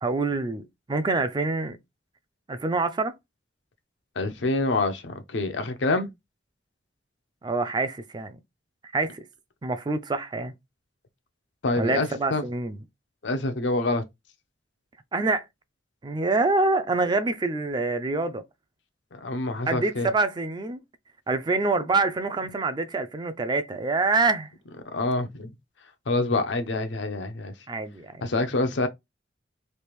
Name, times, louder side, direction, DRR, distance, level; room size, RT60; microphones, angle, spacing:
voice 1, 0.0-1.8 2.5-3.2 7.4-8.4 8.9-9.3 9.6-10.5 11.8-12.8 15.1-15.5 16.0-18.4 19.7-20.8 21.3-24.5 27.7-28.2, right 3 dB, 25° right, 0.3 m, -26 dB
voice 2, 4.2-6.1 11.6-12.4 13.2-14.0 19.1-20.1 24.9-25.5 26.1-27.5 28.2-28.9, left 2 dB, 85° left, 0.6 m, -26 dB
3.3 x 2.4 x 3.0 m
head